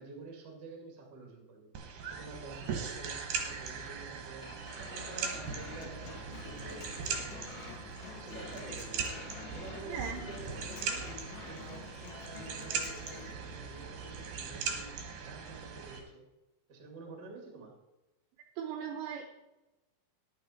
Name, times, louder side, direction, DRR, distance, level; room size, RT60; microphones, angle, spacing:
voice 1, 0.0-1.7 2.0-4.5 4.8-7.7 8.1-9.3 9.5-16.3 16.7-17.7, right 3 dB, 45° right, 1 dB, 1.3 m, -49 dB
sound 1, 1.7-16.0, right 5 dB, 65° right, 2.2 m, -40 dB
sound 2, 4.4-11.6, left 2 dB, 40° left, 1.2 m, -50 dB
Human voice / Acoustic guitar, 5.3-13.3, left 8 dB, 80° left, 2.6 m, -50 dB
voice 2, 9.9-10.2 18.6-19.2, right 8 dB, 80° right, 4 dB, 2.6 m, -38 dB
11.0 x 9.4 x 4.3 m, 1.0 s
omnidirectional pair, 5.8 m